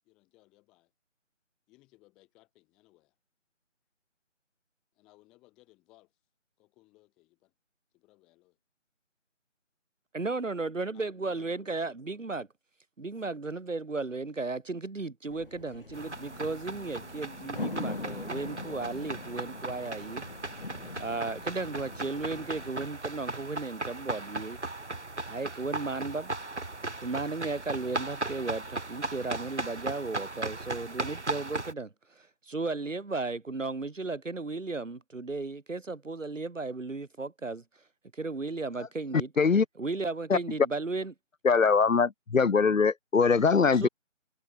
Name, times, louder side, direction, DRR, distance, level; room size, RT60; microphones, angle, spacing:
voice 1, 0.0-0.9 1.7-3.2 4.9-6.2 6.6-7.5 7.9-8.6 10.9-11.9, left 20 dB, ahead, 2.1 m, -63 dB
voice 2, 10.1-12.5 13.0-20.3 21.0-24.6 25.3-26.3 27.0-37.6 38.1-39.3 39.8-41.1 43.7-43.9, right 3 dB, 75° right, 2.2 m, -35 dB
sound 1, 15.3-22.7, left 3 dB, 45° left, 4.8 m, -42 dB
sound 2, 15.9-31.7, right 2 dB, 60° right, 6.5 m, -37 dB
voice 3, 41.4-43.9, left 5 dB, 85° left, 1.0 m, -22 dB
figure-of-eight pair, 175°, 38 cm